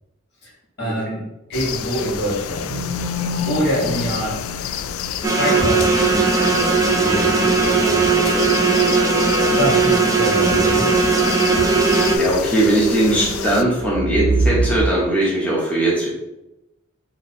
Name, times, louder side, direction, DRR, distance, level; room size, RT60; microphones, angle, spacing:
voice 1, 0.8-2.7 3.5-4.4 5.2-8.1 9.6-10.9, equal, 55° left, -4 dB, 1.4 m, -25 dB
sound 1, 1.5-13.6, left 8 dB, 80° left, 0.3 m, -29 dB
sound 2, 2.7-14.8, right 1 dB, 55° right, 0.6 m, -27 dB
sound 3, 5.2-12.2, right 4 dB, 15° right, 0.5 m, -18 dB
voice 2, 12.1-16.1, right 1 dB, 5° left, -6 dB, 1.0 m, -19 dB
4.4 x 2.6 x 4.2 m, 0.95 s
head